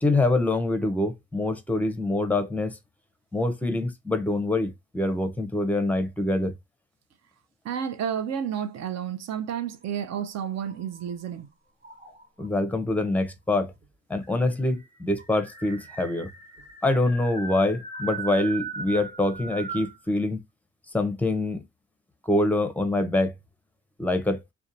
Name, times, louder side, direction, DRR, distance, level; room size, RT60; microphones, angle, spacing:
voice 1, 0.0-2.8 3.3-6.5 12.4-13.7 14.1-16.3 16.8-20.4 20.9-21.6 22.3-23.3 24.0-24.4, left 2 dB, 5° left, 0.6 m, -25 dB
voice 2, 7.6-11.5, right 8 dB, 60° right, 0.6 m, -31 dB
sound 1, 9.8-11.3 11.8-12.5 13.5-13.6 13.8-13.9 14.2-20.0, right 4 dB, 35° right, 1.3 m, -39 dB
2.7 x 2.2 x 2.5 m
cardioid pair, 90°, 30 cm